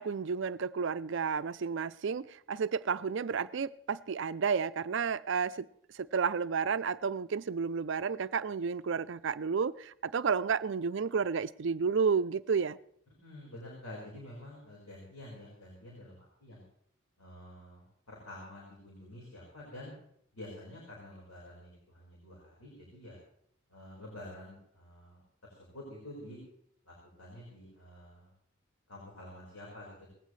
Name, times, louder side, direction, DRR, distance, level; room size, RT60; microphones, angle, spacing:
voice 1, 0.0-5.7 5.9-12.8, right 5 dB, 60° right, 0.4 m, -31 dB
voice 2, 13.2-16.6 17.2-19.9 20.3-23.2 23.7-26.4 26.8-28.3 28.9-30.1, left 1 dB, 90° left, 4.8 m, -49 dB
19.5 x 15.5 x 3.2 m
head